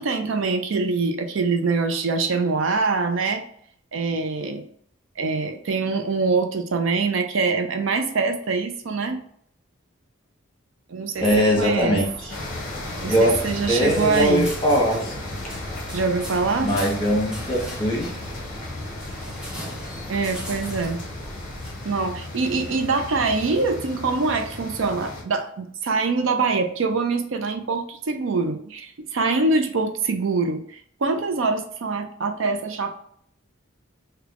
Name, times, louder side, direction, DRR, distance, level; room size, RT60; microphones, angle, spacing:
voice 1, 0.0-3.4 3.9-4.6 5.2-9.2 10.9-11.3 11.6-12.0 13.0-14.5 15.9-16.7 20.1-21.0 21.8-33.0, right 4 dB, 65° right, 6 dB, 0.4 m, -24 dB
voice 2, 11.2-12.3 13.0-13.4 13.7-15.3 16.6-18.1, equal, 25° left, -2 dB, 1.1 m, -21 dB
sound 1, 11.2-21.7, equal, 5° right, 0.6 m, -38 dB
sound 2, 12.3-25.2, left 2 dB, 40° left, 0.7 m, -35 dB
3.3 x 2.3 x 3.6 m, 0.62 s
head